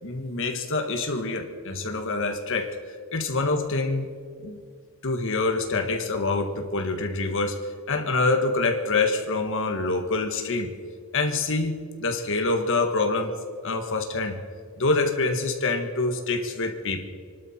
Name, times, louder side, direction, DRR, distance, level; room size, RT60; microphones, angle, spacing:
voice 1, 0.0-2.7 3.1-4.1 4.4-4.6 5.0-7.6 7.9-10.7 11.1-13.3 13.6-14.4 14.8-17.1, left 3 dB, 65° left, 5 dB, 1.5 m, -26 dB
27.5 x 12.0 x 4.3 m, 2.1 s
head